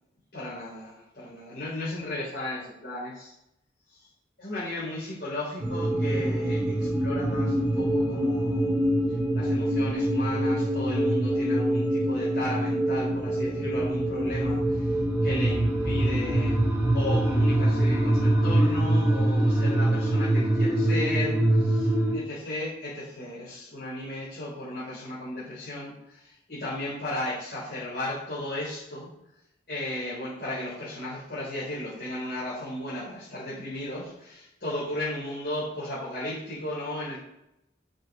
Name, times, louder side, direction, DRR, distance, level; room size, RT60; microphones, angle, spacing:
voice 1, 0.3-3.3 3.9-4.1 4.4-8.7 9.1-16.6 16.9-29.1 29.7-37.2, left 1 dB, 60° left, -9 dB, 4.0 m, -35 dB
sound 1, 5.6-22.2, right 1 dB, 10° right, 1.8 m, -24 dB
7.7 x 6.4 x 5.4 m, 0.81 s
head